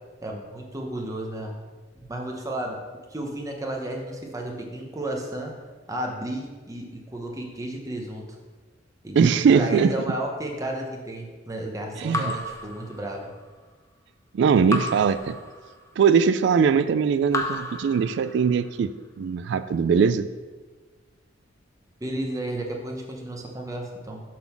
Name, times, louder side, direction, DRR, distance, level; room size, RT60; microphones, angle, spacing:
voice 1, 0.2-1.6 2.1-2.8 3.1-5.5 5.9-8.3 9.0-9.3 9.5-13.3 22.0-24.2, right 1 dB, 20° right, 1 dB, 1.0 m, -32 dB
voice 2, 9.2-9.9 12.0-12.4 14.3-15.4 16.0-20.3, right 6 dB, 65° right, 13 dB, 0.3 m, -21 dB
Raindrop / Drip, 12.1-13.5 14.7-16.1 17.3-18.7, left 2 dB, 15° left, 0.6 m, -33 dB
7.4 x 3.9 x 6.0 m, 1.3 s
head